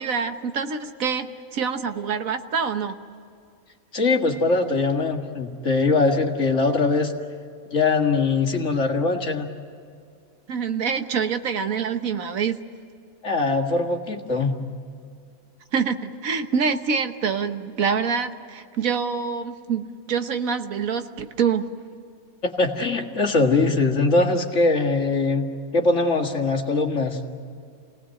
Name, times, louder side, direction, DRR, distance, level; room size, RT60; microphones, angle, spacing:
voice 1, 0.0-2.9 10.5-12.6 15.7-21.7, right 6 dB, 80° right, 8 dB, 1.6 m, -26 dB
voice 2, 3.9-7.1 7.7-9.5 13.2-14.6 22.4-27.2, left 3 dB, 60° left, 3 dB, 2.3 m, -22 dB
29.0 x 18.5 x 7.7 m, 2.4 s
omnidirectional pair, 1.4 m